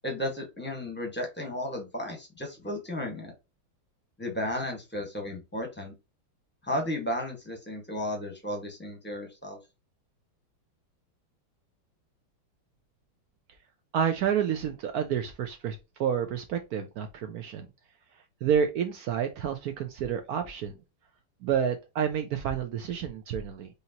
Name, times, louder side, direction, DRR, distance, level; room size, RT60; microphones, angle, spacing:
voice 1, 0.0-3.3 4.2-5.9 6.6-9.6, left 1 dB, 10° left, 0.8 m, -34 dB
voice 2, 13.9-17.7 18.4-20.7 21.4-23.7, right 8 dB, 80° right, 0.8 m, -29 dB
5.0 x 2.8 x 2.7 m
omnidirectional pair, 2.2 m